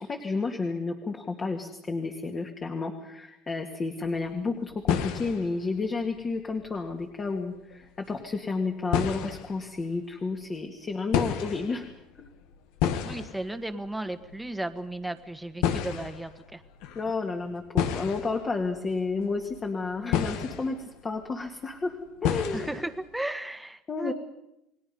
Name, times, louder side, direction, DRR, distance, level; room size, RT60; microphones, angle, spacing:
voice 1, 0.0-11.9 12.2-12.3 16.9-22.7 23.9-24.1, left 4 dB, 25° left, 3 dB, 2.3 m, -31 dB
sound 1, 4.0-4.4 4.7-8.3 8.6-10.0 11.1-21.7 22.2-23.1, left 9 dB, 75° left, 1.8 m, -31 dB
voice 2, 13.0-16.6 22.5-24.1, right 1 dB, 5° right, 9 dB, 1.6 m, -35 dB
29.5 x 20.0 x 5.5 m, 0.83 s
cardioid pair, 125°, 0 cm